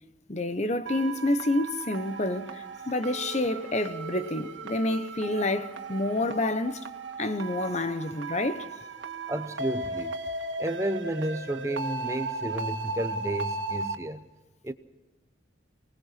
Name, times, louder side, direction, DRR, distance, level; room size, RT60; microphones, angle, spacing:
voice 1, 0.3-6.9 7.2-8.7, left 2 dB, 35° left, 1.0 m, -28 dB
sound 1, 0.9-14.0, right 3 dB, 70° right, 2.1 m, -36 dB
voice 2, 9.3-10.1 10.6-14.3 14.6-14.7, right 1 dB, 15° right, 0.8 m, -32 dB
25.0 x 19.5 x 5.9 m
head